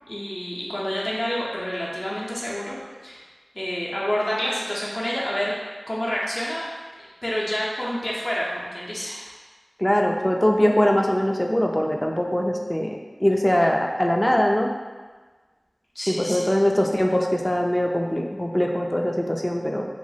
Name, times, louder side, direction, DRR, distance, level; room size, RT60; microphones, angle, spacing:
voice 1, 0.1-3.2 3.5-5.5 5.9-6.7 7.0-9.2 15.9-16.5, equal, 55° left, -6 dB, 0.6 m, -28 dB
voice 2, 9.8-14.7 16.1-19.9, equal, 20° left, 1 dB, 0.3 m, -22 dB
2.7 x 2.0 x 3.9 m, 1.4 s
wide cardioid pair, 55°, 0 cm